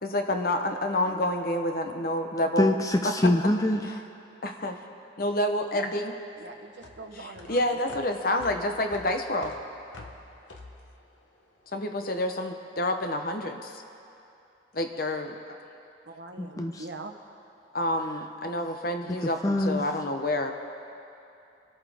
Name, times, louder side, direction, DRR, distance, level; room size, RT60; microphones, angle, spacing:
voice 1, 0.0-2.7 3.0-3.1 4.4-4.8 5.2-6.2 7.2-9.5 11.7-13.8 14.7-15.4 17.7-20.5, left 1 dB, 50° left, 5 dB, 0.9 m, -28 dB
voice 2, 2.6-3.9 16.4-16.8 19.4-19.8, left 1 dB, 20° left, 5 dB, 0.4 m, -24 dB
sound 1, 5.5-12.0, left 2 dB, 85° left, 1.2 m, -48 dB
voice 3, 6.4-7.6 16.0-17.1, right 3 dB, 65° right, 5 dB, 0.9 m, -42 dB
24.0 x 8.7 x 3.5 m, 2.7 s
head